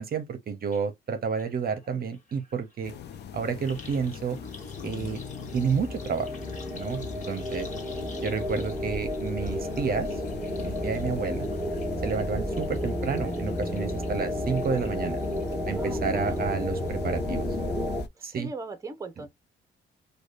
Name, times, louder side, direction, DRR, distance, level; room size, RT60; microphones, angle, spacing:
voice 1, 0.0-2.9 3.3-4.4 4.8-5.2 5.5-6.3 6.7-7.7 8.2-10.1 10.6-11.5 12.0-15.2 15.6-17.5 18.2-18.5, right 6 dB, 50° right, 0.7 m, -30 dB
sound 1, 0.7-0.8 1.1-15.7 16.1-16.6 16.9-17.0, left 3 dB, 40° left, 1.5 m, -51 dB
sound 2, 2.8-18.1, left 7 dB, 60° left, 0.5 m, -41 dB
sound 3, 4.3-18.0, left 1 dB, 5° left, 1.0 m, -32 dB
voice 2, 15.8-16.4 18.1-19.3, right 2 dB, 15° right, 0.7 m, -40 dB
4.8 x 2.3 x 2.4 m
cardioid pair, 90°, 20 cm